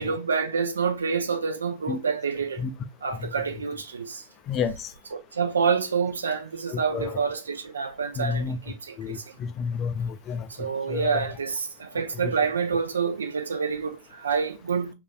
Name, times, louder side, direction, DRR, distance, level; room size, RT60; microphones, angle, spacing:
voice 1, 0.0-2.6 3.0-4.2 5.1-9.2 10.5-14.9, right 5 dB, 70° right, 0.4 m, -28 dB
voice 2, 4.5-4.9 6.7-7.2 8.2-8.6 9.0-11.3 12.2-12.3, left 6 dB, 35° left, 0.4 m, -30 dB
3.8 x 2.4 x 2.2 m
figure-of-eight pair, 90°, 0 cm